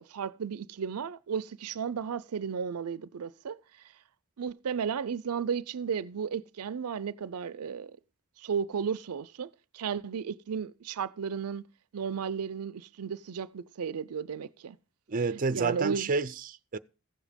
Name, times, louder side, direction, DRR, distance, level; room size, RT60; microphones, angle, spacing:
voice 1, 0.0-3.6 4.4-8.0 8.4-11.6 11.9-14.8 15.3-16.1, right 6 dB, 85° right, 0.5 m, -34 dB
voice 2, 15.1-16.8, right 4 dB, 40° right, 0.6 m, -29 dB
15.5 x 7.3 x 5.1 m
head